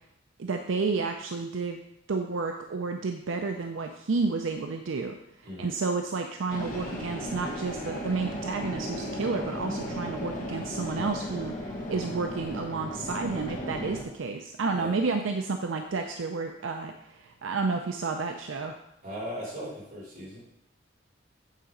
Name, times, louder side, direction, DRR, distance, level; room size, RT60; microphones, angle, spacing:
voice 1, 0.4-1.8 2.1-5.2 5.6-18.8, right 4 dB, 80° right, 5 dB, 0.5 m, -31 dB
voice 2, 5.4-5.8 14.7-14.9 19.0-20.4, equal, 45° right, -6 dB, 3.1 m, -38 dB
sound 1, 6.5-14.0, equal, 40° left, 1.3 m, -35 dB
8.2 x 4.0 x 5.0 m, 0.80 s
head